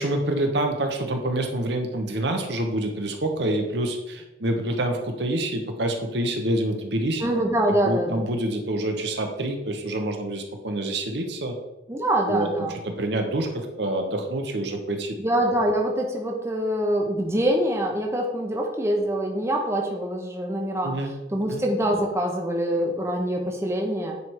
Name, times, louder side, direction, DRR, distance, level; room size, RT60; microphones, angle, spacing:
voice 1, 0.0-7.2 7.7-11.6 12.2-12.5 12.8-15.2 20.8-21.1 21.5-21.6, right 1 dB, 65° right, 4 dB, 1.0 m, -27 dB
voice 2, 7.2-8.3 11.9-12.8 15.2-24.2, right 1 dB, 15° right, 1 dB, 0.8 m, -25 dB
9.5 x 3.5 x 4.5 m, 0.97 s
head